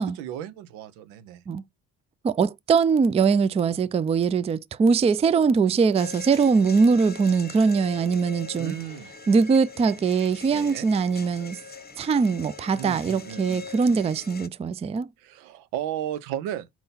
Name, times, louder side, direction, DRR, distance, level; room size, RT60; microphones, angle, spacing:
voice 1, 0.0-1.4 8.6-9.1 10.5-10.9 12.8-13.7 15.2-16.7, right 11 dB, 85° right, 0.7 m, -34 dB
voice 2, 2.2-8.7 9.3-11.6 12.0-15.1, right 5 dB, 15° right, 0.3 m, -22 dB
sound 1, 5.9-14.5, left 4 dB, 20° left, 0.9 m, -42 dB
4.5 x 3.8 x 5.5 m
hypercardioid pair, 50°, 44 cm